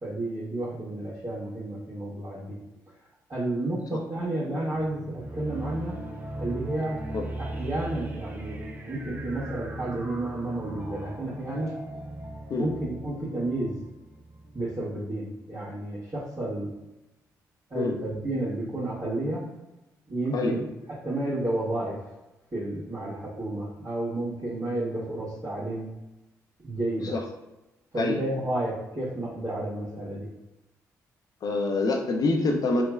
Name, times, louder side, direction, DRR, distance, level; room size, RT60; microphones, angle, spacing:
voice 1, 0.0-2.6 3.3-5.9 6.4-7.0 7.4-8.6 8.8-11.7 12.5-13.7 14.5-16.7 17.7-19.4 20.1-20.7 21.0-22.0 22.5-25.9 26.6-27.2 27.9-30.3, right 1 dB, 45° right, -13 dB, 1.3 m, -31 dB
sound 1, 4.7-14.9, right 1 dB, 20° right, 0.4 m, -39 dB
voice 2, 31.4-32.8, left 3 dB, 50° left, 2 dB, 0.5 m, -25 dB
3.2 x 2.1 x 2.3 m, 0.98 s
hypercardioid pair, 40°, 8 cm